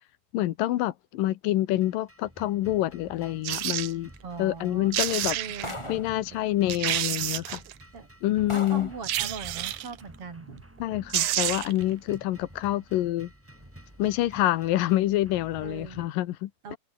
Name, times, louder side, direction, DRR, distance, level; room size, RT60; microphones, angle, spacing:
voice 1, 0.3-4.1 4.4-5.4 5.9-7.6 8.2-8.9 10.8-13.3 14.0-16.8, left 15 dB, 80° left, 2.7 m, -27 dB
sound 1, 1.8-16.1, right 1 dB, 10° right, 0.7 m, -50 dB
sound 2, 3.4-3.9 4.6-4.7 4.9-5.7 6.3-6.4 6.7-7.7 9.0-9.9 10.8-10.9 11.1-11.8 12.1-12.2, right 14 dB, 65° right, 2.2 m, -29 dB
voice 2, 4.2-4.9 5.4-6.1 7.9-10.6 15.6-16.0 16.6-16.8, right 5 dB, 40° right, 4.3 m, -41 dB
sound 3, 5.6-6.2 7.2-7.3 7.9-8.0 8.5-9.0, left 2 dB, 25° left, 0.6 m, -38 dB
omnidirectional pair, 4.0 m